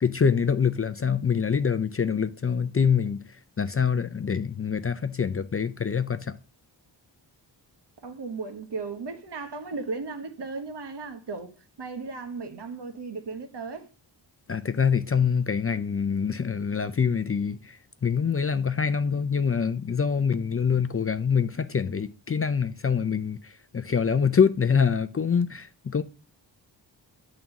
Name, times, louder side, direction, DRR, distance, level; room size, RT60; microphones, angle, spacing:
voice 1, 0.0-3.2 3.6-6.4 14.5-26.0, left 6 dB, 35° left, 0.4 m, -25 dB
voice 2, 8.0-13.9, right 4 dB, 65° right, 1.3 m, -36 dB
10.5 x 3.8 x 6.9 m
wide cardioid pair, 175°, 43 cm